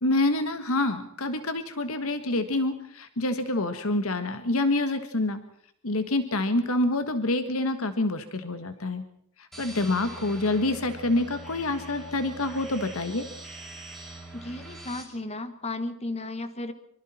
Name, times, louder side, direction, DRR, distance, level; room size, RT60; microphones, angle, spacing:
voice 1, 0.0-5.4 5.8-9.0 9.6-13.2, left 2 dB, 75° left, 9 dB, 1.6 m, -27 dB
sound 1, 9.5-15.0, right 2 dB, ahead, 6.7 m, -43 dB
voice 2, 14.3-16.7, left 2 dB, 30° left, 10 dB, 1.6 m, -34 dB
25.0 x 24.5 x 4.4 m, 0.66 s
head